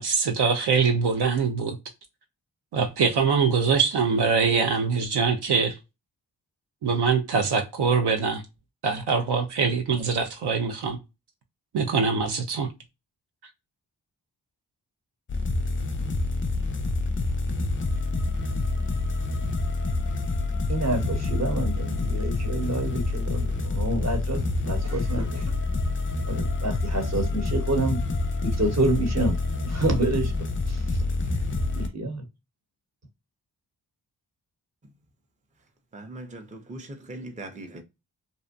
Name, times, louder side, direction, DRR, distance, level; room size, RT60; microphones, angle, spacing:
voice 1, 0.0-1.8 2.7-5.8 6.8-8.4 8.8-11.0 11.7-12.7 13.4-13.5, right 5 dB, 65° right, 0.6 m, -23 dB
sound 1, 15.3-31.9, left 2 dB, 30° left, 0.5 m, -27 dB
voice 2, 20.7-25.4 26.3-28.0 28.4-29.4 29.7-30.3 30.7-30.8 31.8-32.2, right 2 dB, 40° right, 1.0 m, -28 dB
voice 3, 35.9-37.8, right 2 dB, 15° right, 0.6 m, -40 dB
2.6 x 2.1 x 2.5 m
cardioid pair, 45°, 42 cm